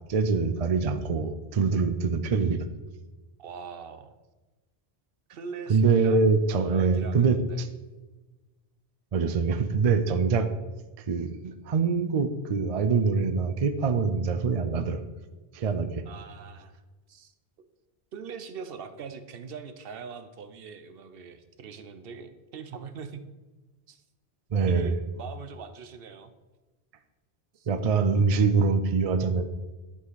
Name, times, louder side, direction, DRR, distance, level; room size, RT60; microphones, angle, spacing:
voice 1, 0.1-2.7 5.7-7.7 9.1-10.5 11.0-15.0 15.5-16.0 24.5-25.0 27.7-29.4, right 4 dB, 45° right, 9 dB, 0.5 m, -24 dB
voice 2, 3.4-4.1 5.3-6.3 6.7-7.6 16.1-16.8 17.1-17.3 18.1-23.3 23.9-24.0 24.7-26.3 27.6-27.7, right 6 dB, 65° right, 10 dB, 0.9 m, -42 dB
11.0 x 5.1 x 4.0 m, 1.2 s
omnidirectional pair, 1.1 m